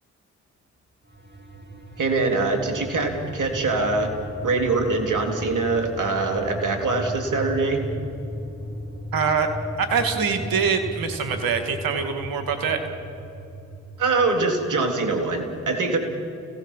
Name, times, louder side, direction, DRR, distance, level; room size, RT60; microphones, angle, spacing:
sound 1, 1.0-14.3, equal, 30° right, 2.6 m, -36 dB
voice 1, 2.0-4.1 4.4-7.8 14.0-16.0, right 3 dB, 60° right, 4 dB, 3.7 m, -23 dB
voice 2, 9.1-9.5 9.8-12.8, right 6 dB, 75° right, 6 dB, 2.5 m, -24 dB
30.0 x 17.5 x 7.5 m, 2.7 s
hypercardioid pair, 40°, 35 cm